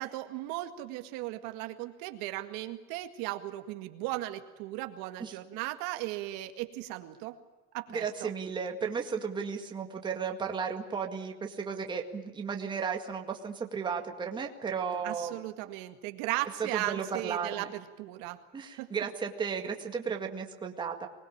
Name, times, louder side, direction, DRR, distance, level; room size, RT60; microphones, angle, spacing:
voice 1, 0.0-7.4 7.7-8.3 15.0-18.4 18.8-18.9, right 16 dB, 65° right, 7 dB, 2.0 m, -37 dB
voice 2, 7.9-15.3 16.6-17.7 18.5-21.1, right 6 dB, 15° right, 3 dB, 2.0 m, -34 dB
25.0 x 21.0 x 8.7 m, 1.2 s
cardioid pair, 175°, 31 cm